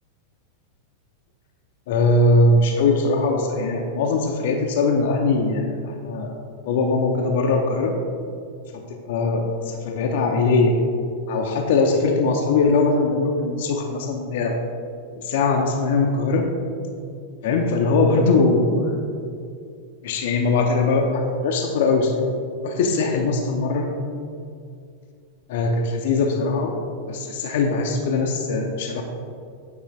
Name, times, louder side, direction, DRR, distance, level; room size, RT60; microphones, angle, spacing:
voice 1, 1.9-6.3 6.7-7.9 8.7-10.8 11.3-14.6 15.2-16.5 17.4-18.9 20.0-22.3 22.6-23.9 25.5-26.7 27.1-29.0, left 3 dB, 55° left, 2 dB, 0.6 m, -21 dB
8.8 x 4.8 x 3.2 m, 2.4 s
figure-of-eight pair, 90°, 0 cm